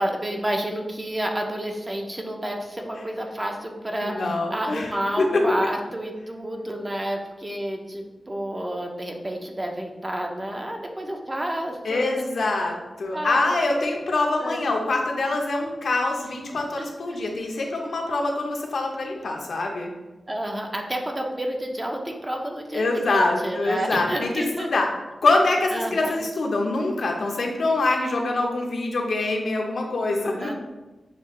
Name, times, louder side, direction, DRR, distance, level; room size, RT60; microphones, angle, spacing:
voice 1, 0.0-12.2 13.1-13.5 14.4-14.6 16.5-16.9 20.3-24.7 25.7-26.2 30.4-30.5, right 1 dB, 20° right, 2 dB, 0.5 m, -30 dB
voice 2, 4.0-4.9 5.2-5.4 11.8-19.9 22.7-24.9 25.2-30.5, left 2 dB, 70° left, 1 dB, 0.7 m, -24 dB
6.7 x 2.4 x 3.1 m, 1.1 s
wide cardioid pair, 125°, 0 cm